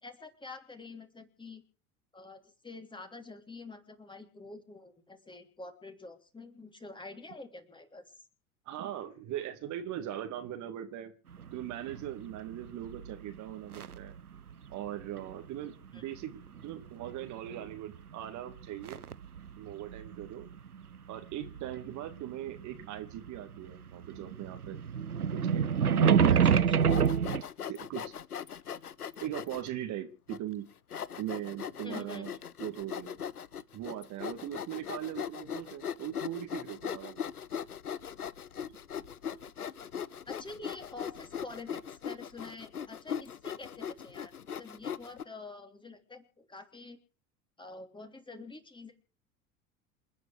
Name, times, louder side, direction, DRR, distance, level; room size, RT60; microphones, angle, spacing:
voice 1, 0.0-1.6 2.1-8.0 15.9-16.0 26.3-26.8 31.8-32.4 40.3-47.0 47.6-48.9, left 3 dB, 10° left, 6 dB, 3.3 m, -47 dB
voice 2, 8.7-11.1 11.5-14.1 14.7-19.0 19.6-20.5 21.1-24.8 25.3-27.0 27.7-28.1 29.2-30.7 31.2-32.3 32.6-33.2 33.7-37.3, right 12 dB, 40° right, 7 dB, 2.4 m, -40 dB
sound 1, 11.3-14.2 14.5-15.7 16.5-18.0 18.2-23.4 23.6-27.4, right 7 dB, 85° right, 0.7 m, -28 dB
Sawing, 26.8-29.7 30.3-30.4 30.9-45.2, left 8 dB, 85° left, 0.7 m, -39 dB
28.5 x 9.5 x 4.9 m, 0.38 s
figure-of-eight pair, 75°, 44 cm